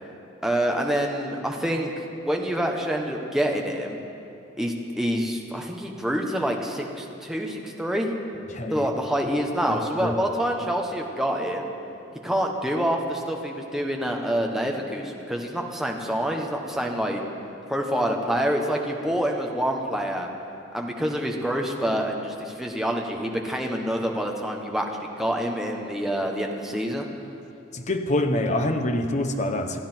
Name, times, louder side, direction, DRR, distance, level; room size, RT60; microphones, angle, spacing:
voice 1, 0.4-4.0 4.6-8.1 8.7-11.7 12.2-17.2 17.7-20.3 20.7-24.9 25.2-27.0, equal, ahead, 0 dB, 1.2 m, -27 dB
voice 2, 8.5-8.9 10.0-10.1 27.7-29.8, left 1 dB, 35° left, 5 dB, 0.9 m, -25 dB
28.5 x 10.0 x 4.5 m, 2.9 s
head